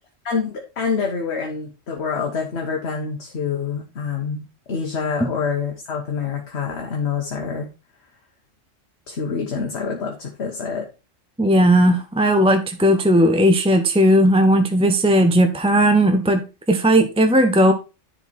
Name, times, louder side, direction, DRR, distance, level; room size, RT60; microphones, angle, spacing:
voice 1, 0.2-7.7 9.1-10.8, left 5 dB, 60° left, 1 dB, 1.5 m, -26 dB
voice 2, 11.4-17.7, equal, 5° right, 6 dB, 0.6 m, -16 dB
10.5 x 4.4 x 4.3 m, 0.30 s
omnidirectional pair, 1.3 m